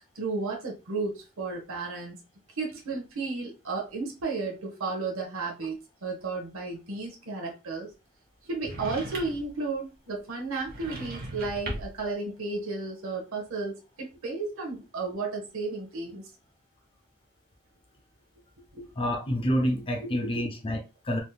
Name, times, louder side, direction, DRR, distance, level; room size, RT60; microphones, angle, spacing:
voice 1, 0.0-2.2 2.6-7.9 8.4-16.3 18.7-18.9 20.0-20.4, right 3 dB, 65° right, 0.8 m, -33 dB
sound 1, 8.6-9.5 10.6-12.1, right 1 dB, 45° right, 1.0 m, -38 dB
voice 2, 19.0-21.2, equal, 25° left, 0.6 m, -28 dB
3.5 x 2.7 x 2.2 m
head